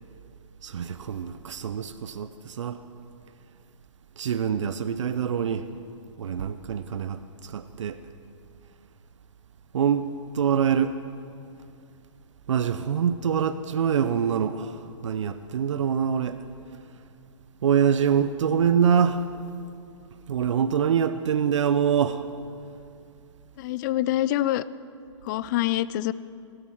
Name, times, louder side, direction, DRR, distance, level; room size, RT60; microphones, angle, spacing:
voice 1, 0.6-2.8 4.2-5.7 6.2-8.0 9.7-10.1 10.3-11.0 12.5-16.4 17.6-19.2 20.3-22.2, right 8 dB, 70° right, 0.7 m, -25 dB
voice 2, 23.6-24.6 25.2-26.1, left 14 dB, 40° left, 0.5 m, -25 dB
21.0 x 13.0 x 4.6 m
hypercardioid pair, 125°, 16 cm